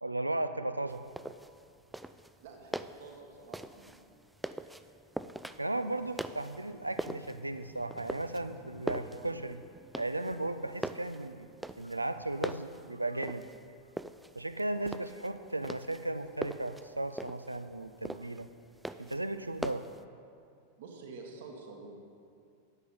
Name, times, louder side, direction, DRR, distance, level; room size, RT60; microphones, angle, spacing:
voice 1, 0.0-1.0 5.6-9.6 10.0-11.5 11.8-13.4 14.4-18.5 19.0-19.9, right 2 dB, 85° right, 10 dB, 0.4 m, -35 dB
sound 1, 0.9-20.0, right 1 dB, 5° right, 0.3 m, -43 dB
voice 2, 2.4-4.1 20.8-21.9, right 4 dB, 55° right, 1 dB, 1.5 m, -48 dB
9.1 x 8.2 x 5.4 m, 2.4 s
figure-of-eight pair, 90°, 0 cm